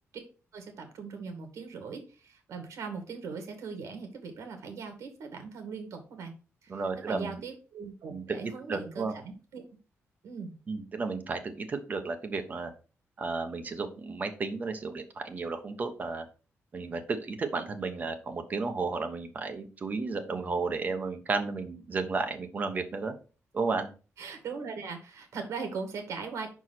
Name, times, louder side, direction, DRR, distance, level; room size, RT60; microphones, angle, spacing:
voice 1, 0.5-6.3 6.6-6.8 7.1-9.6 10.2-10.6 24.2-26.5, right 5 dB, 80° right, 5 dB, 2.1 m, -40 dB
voice 2, 6.7-7.4 8.1-8.2 8.7-9.1 10.7-12.7 13.2-16.2 16.7-23.1 23.5-23.9, right 4 dB, 35° right, 7 dB, 1.0 m, -33 dB
5.5 x 4.7 x 5.9 m, 0.36 s
wide cardioid pair, 170°, 5 cm